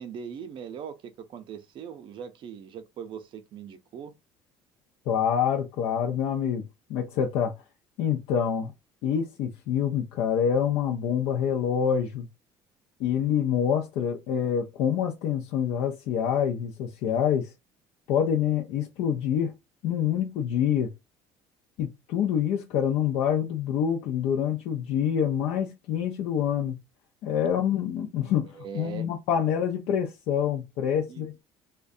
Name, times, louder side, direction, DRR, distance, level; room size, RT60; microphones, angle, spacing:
voice 1, 0.0-4.1 28.5-29.1 31.1-31.4, right 7 dB, 50° right, 0.6 m, -40 dB
voice 2, 5.1-6.6 6.9-7.5 8.0-8.7 9.0-12.3 13.0-17.5 18.1-19.5 19.8-20.9 21.8-26.8 27.2-31.4, left 8 dB, 75° left, 0.5 m, -26 dB
2.5 x 2.2 x 2.5 m
supercardioid pair, 100°, 11 cm